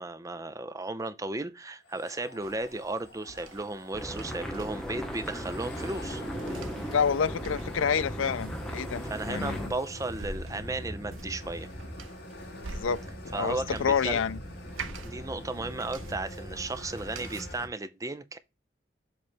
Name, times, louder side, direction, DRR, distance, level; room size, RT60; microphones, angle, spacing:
voice 1, 0.0-6.2 9.0-11.7 13.3-14.2 15.0-18.4, right 2 dB, 15° right, 0.4 m, -35 dB
sound 1, 1.8-17.7, equal, 55° left, 2.2 m, -43 dB
sound 2, 2.4-17.4, right 3 dB, 90° right, 0.8 m, -47 dB
sound 3, 3.9-9.7, equal, 5° left, 0.9 m, -37 dB
voice 2, 6.9-9.6 12.7-14.4, left 6 dB, 80° left, 0.4 m, -28 dB
7.4 x 3.2 x 4.4 m
head